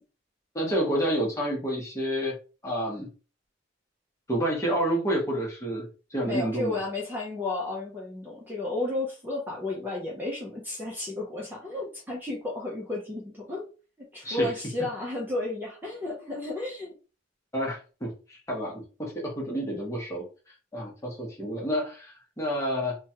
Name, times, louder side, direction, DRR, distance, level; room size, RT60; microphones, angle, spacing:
voice 1, 0.5-2.3 2.6-3.1 4.3-6.8 14.2-14.5 17.5-23.0, equal, 15° left, -3 dB, 0.9 m, -29 dB
voice 2, 6.2-13.7 14.1-16.9, left 2 dB, 10° right, -3 dB, 0.6 m, -32 dB
3.0 x 2.2 x 2.8 m, 0.35 s
head